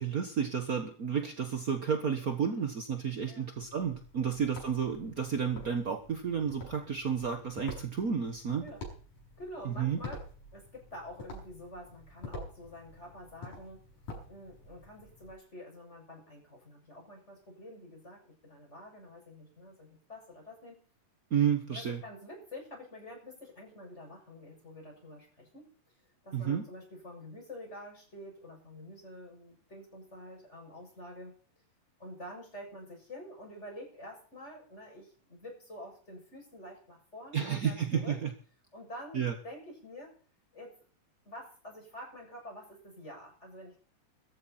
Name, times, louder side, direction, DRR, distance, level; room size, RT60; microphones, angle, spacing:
voice 1, 0.0-8.6 9.6-10.0 21.3-22.0 26.3-26.6 37.3-38.3 39.1-39.3, right 7 dB, 65° right, 6 dB, 0.8 m, -31 dB
sound 1, 3.5-15.3, left 2 dB, 65° left, 7.7 m, -48 dB
voice 2, 9.4-10.2 10.5-13.9 14.3-20.8 21.7-25.7 26.2-31.4 32.0-38.2 38.7-40.1 40.5-40.7 41.3-43.8, left 1 dB, 20° left, 0 dB, 7.6 m, -48 dB
16.5 x 14.0 x 4.3 m, 0.42 s
omnidirectional pair, 3.8 m